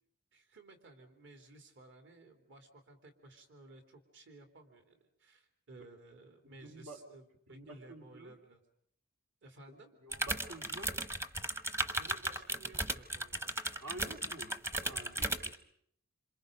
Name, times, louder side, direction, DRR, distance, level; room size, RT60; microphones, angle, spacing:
voice 1, 0.3-8.6 9.4-9.9 12.0-13.6, right 2 dB, 55° right, 4 dB, 3.2 m, -56 dB
voice 2, 6.4-7.0 7.5-8.3 10.0-11.0 13.8-14.5 14.8-15.5, right 2 dB, 75° right, 3 dB, 2.8 m, -49 dB
sound 1, 10.1-15.5, right 1 dB, 10° right, 1.0 m, -36 dB
27.5 x 27.5 x 5.3 m, 0.68 s
head